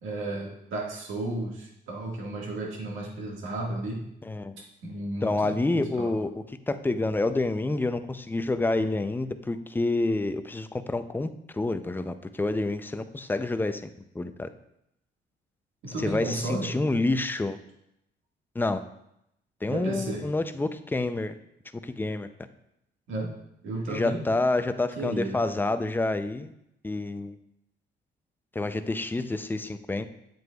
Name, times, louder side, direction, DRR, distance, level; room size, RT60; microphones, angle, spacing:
voice 1, 0.0-4.0 4.6-6.1 15.8-16.8 19.7-20.3 23.1-23.3 23.6-24.2 25.0-25.4, right 2 dB, 80° right, -1 dB, 1.7 m, -33 dB
voice 2, 4.2-4.5 5.2-13.9 14.1-14.5 16.0-17.6 18.6-18.8 19.6-21.3 21.8-22.3 23.9-26.5 26.8-27.4 28.5-30.1, left 2 dB, 10° left, 10 dB, 0.4 m, -28 dB
7.9 x 7.7 x 2.3 m, 0.80 s
cardioid pair, 90°, 20 cm